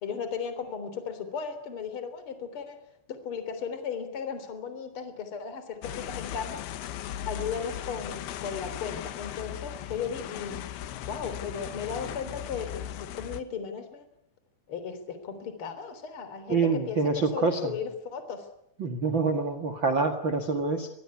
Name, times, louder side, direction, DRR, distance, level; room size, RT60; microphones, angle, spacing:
voice 1, 0.0-2.8 3.1-6.6 7.3-10.6 11.1-14.1 14.7-18.5, left 6 dB, 30° left, 10 dB, 3.6 m, -36 dB
sound 1, 5.8-13.4, left 11 dB, 70° left, 2.7 m, -38 dB
voice 2, 16.5-17.7 18.8-20.9, right 4 dB, 70° right, 7 dB, 1.1 m, -26 dB
26.5 x 21.0 x 9.8 m, 0.75 s
omnidirectional pair, 5.6 m